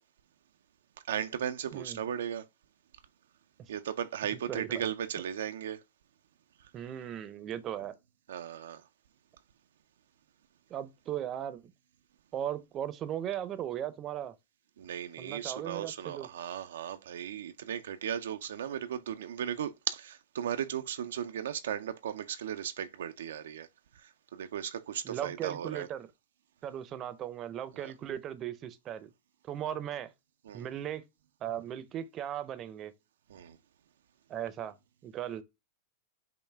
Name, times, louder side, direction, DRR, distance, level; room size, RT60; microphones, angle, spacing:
voice 1, 1.1-2.5 3.7-5.8 8.3-8.8 14.8-23.7 23.9-25.9 27.7-27.9 30.5-30.7 33.3-33.6, right 9 dB, 80° right, 0.4 m, -36 dB
voice 2, 4.5-4.8 6.7-7.9 10.7-11.6 12.3-14.3 15.2-16.3 25.0-26.1 26.6-29.1 29.5-30.1 30.5-31.0 31.4-32.9 34.3-34.7 35.0-35.4, right 10 dB, 35° right, 0.6 m, -37 dB
5.5 x 2.2 x 3.3 m
hypercardioid pair, 115°, 0 cm